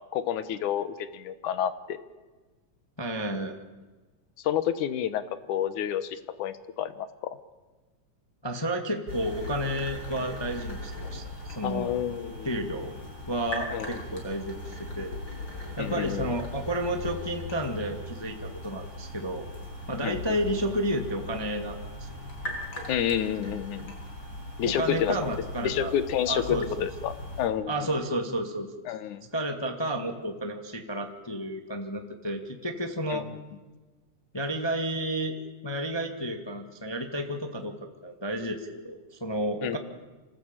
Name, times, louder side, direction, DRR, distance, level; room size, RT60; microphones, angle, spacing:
voice 1, 0.1-2.0 4.4-5.2 5.5-7.4 11.6-12.5 13.7-14.0 15.8-16.3 20.0-20.2 22.9-23.9 24.6-25.2 25.6-27.7 28.9-29.3 33.1-33.4 39.6-39.8, left 10 dB, 75° left, 13 dB, 2.6 m, -29 dB
voice 2, 3.0-3.5 8.4-11.9 12.4-12.9 13.3-15.2 15.8-19.5 19.9-22.1 24.6-25.9 26.3-26.9 27.7-28.7 29.3-33.3 34.3-35.4 35.6-39.8, right 1 dB, 10° left, 4 dB, 1.3 m, -31 dB
sound 1, 9.1-27.5, left 1 dB, 35° left, 5.9 m, -39 dB
26.5 x 19.5 x 8.9 m, 1.3 s
omnidirectional pair, 3.5 m